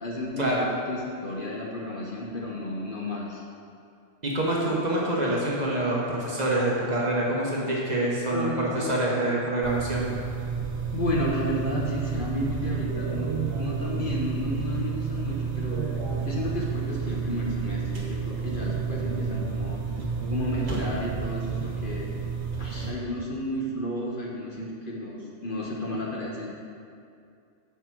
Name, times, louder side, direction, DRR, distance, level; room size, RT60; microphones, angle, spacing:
voice 1, 0.0-3.4 8.3-9.0 10.9-13.3 13.6-15.8 16.2-19.8 20.3-22.1 22.6-26.5, left 1 dB, 50° left, -3 dB, 0.9 m, -32 dB
voice 2, 4.2-10.1, right 1 dB, 35° right, -4 dB, 1.0 m, -26 dB
sound 1, 9.6-22.9, right 5 dB, 60° right, 1.3 m, -30 dB
5.8 x 4.8 x 6.0 m, 2.4 s
omnidirectional pair, 1.3 m